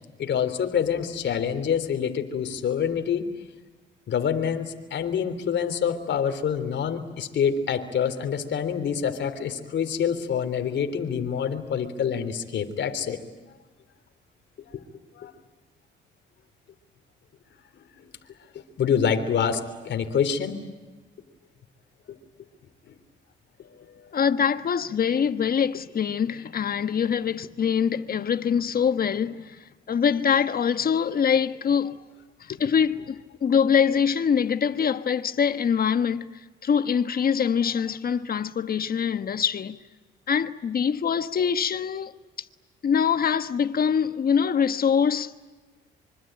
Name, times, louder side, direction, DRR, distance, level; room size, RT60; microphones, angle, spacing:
voice 1, 0.2-3.3 4.1-13.2 14.7-14.8 15.2-15.3 18.0-18.1 18.8-20.6 22.9-23.0 24.0-24.1, left 7 dB, 65° left, 3.5 m, -26 dB
voice 2, 24.1-32.0 32.4-36.3 36.6-39.8 40.3-42.1 42.8-45.3, left 7 dB, 50° left, 1.4 m, -24 dB
25.5 x 25.0 x 9.1 m
cardioid pair, 90°, 20 cm